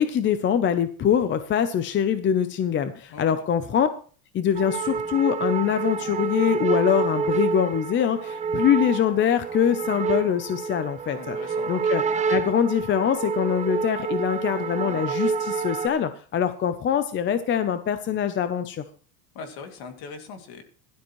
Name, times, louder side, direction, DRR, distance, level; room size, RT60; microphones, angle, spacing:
voice 1, 0.0-3.9 4.3-11.4 11.7-12.0 12.3-18.8, left 8 dB, 25° left, 11 dB, 0.6 m, -23 dB
voice 2, 3.1-3.4 11.1-11.8 19.3-20.6, left 5 dB, 55° left, 6 dB, 2.5 m, -41 dB
sound 1, 4.6-15.9, right 5 dB, 15° right, 0.6 m, -28 dB
16.0 x 12.5 x 3.1 m, 0.42 s
cardioid pair, 160°, 44 cm